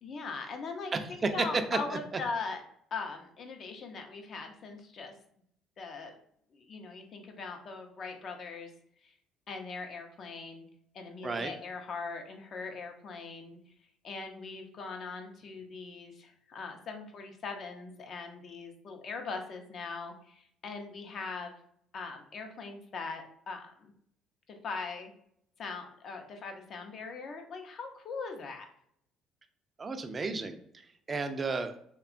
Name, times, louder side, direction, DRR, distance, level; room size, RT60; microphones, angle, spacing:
voice 1, 0.0-2.6 2.9-5.1 5.8-6.1 6.5-8.7 9.0-9.1 9.5-10.6 10.9-13.6 14.0-21.5 21.9-23.9 24.5-25.1 25.6-28.7, left 4 dB, 50° left, 4 dB, 0.6 m, -40 dB
voice 2, 0.9-1.5 1.7-2.0 11.2-11.5 29.8-30.6 31.1-31.7, right 4 dB, 30° right, 7 dB, 0.4 m, -32 dB
2.8 x 2.2 x 2.5 m, 0.68 s
supercardioid pair, 90°, 0 cm